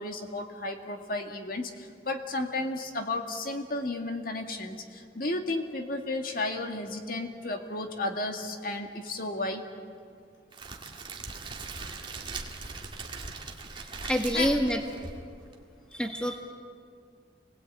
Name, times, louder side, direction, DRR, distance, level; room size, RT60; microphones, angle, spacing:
voice 1, 0.0-9.6 14.0-14.5, left 2 dB, 50° left, 4 dB, 2.1 m, -33 dB
Crackle, 10.5-15.6, right 3 dB, 25° right, 2.1 m, -40 dB
voice 2, 13.8-14.8 15.9-16.4, equal, 5° left, 3 dB, 1.6 m, -27 dB
29.0 x 20.5 x 8.9 m, 2.2 s
head